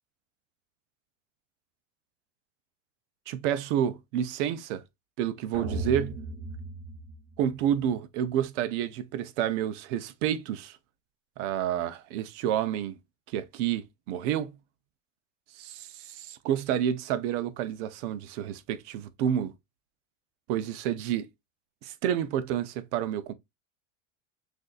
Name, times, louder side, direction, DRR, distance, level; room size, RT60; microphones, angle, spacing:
voice 1, 3.3-4.8 5.2-6.2 7.4-10.8 11.4-13.0 13.3-14.6 15.6-19.5 20.5-21.3 21.8-23.3, right 10 dB, 65° right, 0.7 m, -29 dB
sound 1, 5.5-7.8, right 3 dB, 40° right, 2.7 m, -36 dB
6.2 x 2.7 x 2.4 m
supercardioid pair, 125°, 38 cm